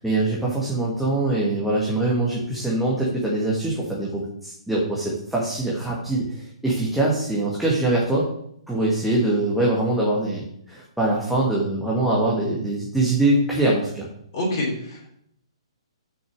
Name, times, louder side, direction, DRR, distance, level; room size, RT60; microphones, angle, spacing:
voice 1, 0.0-8.3 8.7-14.1, right 2 dB, ahead, -5 dB, 1.7 m, -23 dB
voice 2, 14.3-15.1, left 1 dB, 40° left, -3 dB, 3.1 m, -27 dB
6.2 x 6.2 x 6.6 m, 0.70 s
figure-of-eight pair, 125°, 3 cm